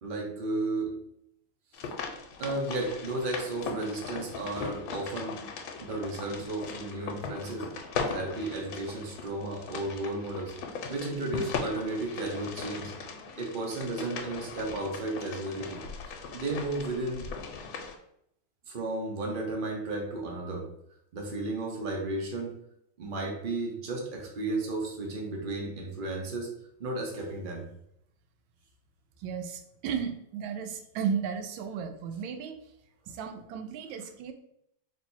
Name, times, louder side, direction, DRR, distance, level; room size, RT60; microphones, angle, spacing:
voice 1, 0.0-0.9 1.7-1.9 2.4-5.4 5.8-7.7 8.1-10.5 10.9-12.9 13.4-17.2 18.7-20.6 21.1-22.6 23.0-26.5 26.8-27.7, right 2 dB, 50° right, 0 dB, 0.6 m, -33 dB
sound 1, 1.7-18.0, left 5 dB, 90° left, 1.4 m, -39 dB
voice 2, 29.2-32.6 33.1-34.3, right 7 dB, 85° right, 7 dB, 1.4 m, -34 dB
3.1 x 3.1 x 4.3 m, 0.74 s
omnidirectional pair, 2.1 m